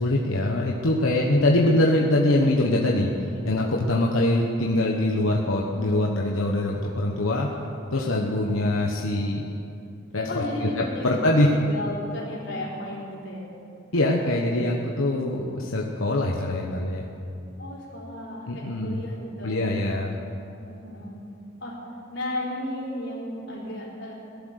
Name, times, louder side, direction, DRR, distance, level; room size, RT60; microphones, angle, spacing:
voice 1, 0.0-3.1 3.4-7.5 7.9-9.4 10.1-10.3 10.8-11.5 13.9-17.0 18.5-19.0 19.4-20.1, left 1 dB, 90° left, -2 dB, 1.2 m, -23 dB
voice 2, 1.0-1.4 10.3-11.1 11.4-13.5 17.6-19.5 20.6-21.2 21.6-21.8 22.1-24.1, left 1 dB, 60° left, -4 dB, 4.1 m, -34 dB
18.5 x 12.0 x 6.6 m, 2.7 s
head